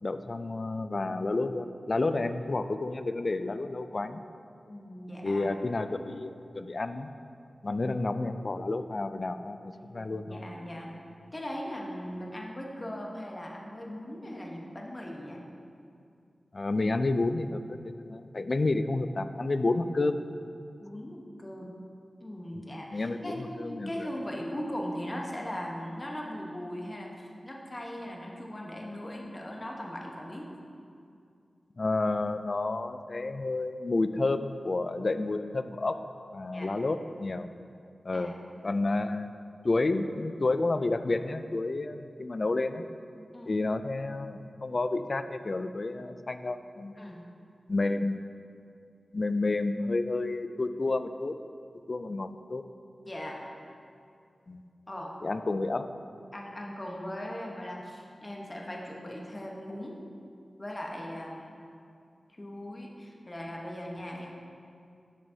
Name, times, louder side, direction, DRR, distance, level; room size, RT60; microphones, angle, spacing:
voice 1, 0.0-4.2 5.2-7.1 7.6-10.4 16.5-20.2 22.5-22.7 22.9-24.1 31.8-36.0 36.3-37.5 38.0-38.3 38.6-39.3 39.6-42.8 43.5-47.1 47.7-48.2 49.1-51.3 51.9-52.6 54.5-54.6 55.2-55.9, left 2 dB, 50° left, 10 dB, 0.3 m, -30 dB
voice 2, 4.7-5.5 9.7-11.1 11.3-15.4 20.8-21.8 22.2-30.5 36.5-36.7 38.1-38.4 43.3-43.6 47.0-47.2 53.0-53.4 54.9-55.1 56.3-60.0 60.6-61.6 62.4-64.3, equal, 30° left, -1 dB, 1.1 m, -39 dB
10.5 x 6.2 x 2.7 m, 2.4 s
wide cardioid pair, 75°, 0 cm